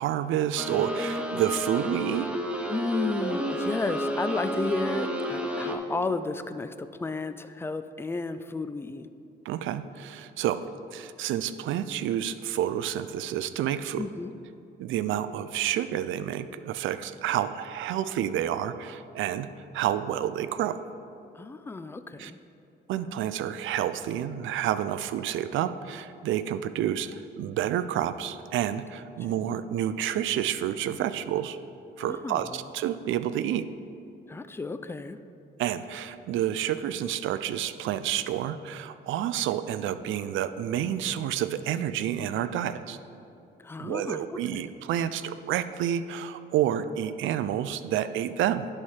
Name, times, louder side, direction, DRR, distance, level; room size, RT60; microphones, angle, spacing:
voice 1, 0.0-2.3 9.4-14.0 14.8-19.5 19.7-20.8 22.2-22.3 22.9-31.6 32.0-33.7 35.6-43.0 43.8-48.7, right 11 dB, 80° right, 13 dB, 0.4 m, -29 dB
sound 1, 0.6-5.8, equal, 5° right, 0.8 m, -31 dB
voice 2, 2.7-9.1 14.0-14.3 21.3-22.4 29.3-29.4 32.0-32.6 34.3-35.2 43.6-44.6, left 3 dB, 10° left, 11 dB, 0.3 m, -33 dB
10.5 x 4.3 x 4.7 m, 2.7 s
cardioid pair, 90°, 20 cm